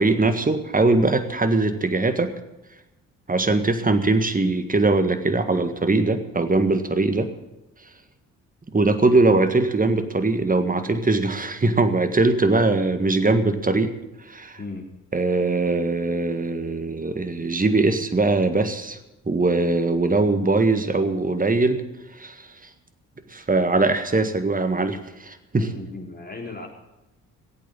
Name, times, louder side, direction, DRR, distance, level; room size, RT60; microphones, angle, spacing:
voice 1, 0.0-2.3 3.3-7.3 8.7-13.9 14.3-14.6 15.1-19.0 19.3-21.8 22.1-22.5 23.3-25.7, right 3 dB, 20° right, 8 dB, 1.7 m, -21 dB
voice 2, 14.6-14.9 25.6-26.7, left 3 dB, 25° left, 0 dB, 4.0 m, -36 dB
17.0 x 8.5 x 8.5 m, 0.95 s
hypercardioid pair, 45°, 39 cm